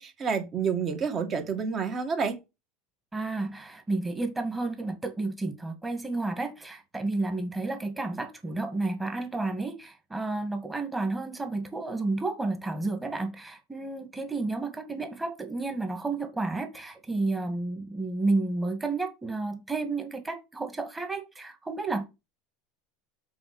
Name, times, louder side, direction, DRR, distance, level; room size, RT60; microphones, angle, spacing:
voice 1, 0.0-2.4, right 6 dB, 35° right, 2.1 m, -29 dB
voice 2, 3.1-22.0, right 3 dB, 15° right, 2.1 m, -31 dB
6.0 x 5.0 x 6.2 m
supercardioid pair, 110°, 0 cm